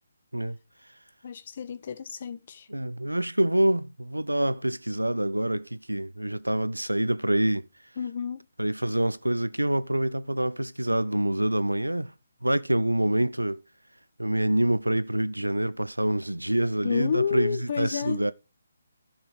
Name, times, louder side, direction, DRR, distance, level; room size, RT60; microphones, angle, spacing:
voice 1, 1.2-2.7 8.0-8.4 16.8-18.2, left 7 dB, 45° left, 0.9 m, -30 dB
voice 2, 2.7-7.6 8.6-12.1 12.4-13.6 14.2-18.3, right 1 dB, 90° right, 0.8 m, -26 dB
14.0 x 6.0 x 4.8 m
figure-of-eight pair, 145°, 0 cm